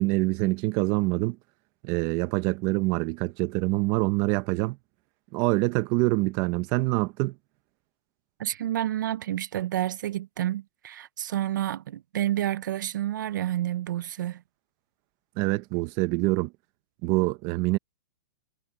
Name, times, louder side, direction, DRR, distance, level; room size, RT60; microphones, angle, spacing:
voice 1, 0.0-1.4 1.8-4.8 5.3-7.3 15.4-16.5 17.0-17.8, right 22 dB, 30° right, 0.8 m, -25 dB
voice 2, 8.4-14.4, right 12 dB, 75° right, 0.6 m, -29 dB
hypercardioid pair, 160°, 10 cm